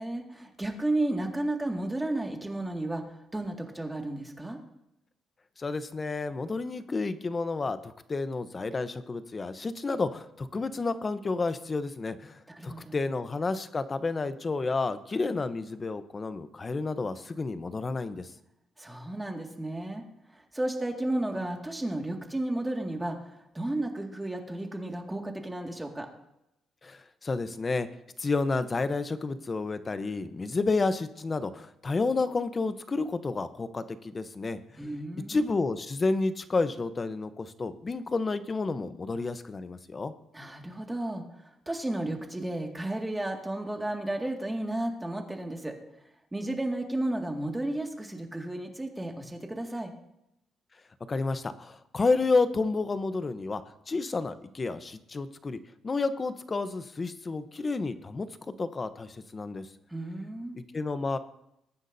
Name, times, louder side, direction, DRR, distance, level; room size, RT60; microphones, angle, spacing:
voice 1, 0.0-4.6 12.5-13.0 18.8-20.0 20.3-26.1 34.8-35.5 40.3-45.8 46.3-49.9 59.9-60.6, right 1 dB, 10° right, 2 dB, 2.1 m, -33 dB
voice 2, 5.6-18.3 26.8-27.9 28.2-34.6 35.3-40.1 51.1-53.6 53.9-55.6 55.8-59.7 60.5-61.2, left 3 dB, 30° left, 11 dB, 0.9 m, -30 dB
21.0 x 9.7 x 2.7 m, 0.84 s
cardioid pair, 90°, 0 cm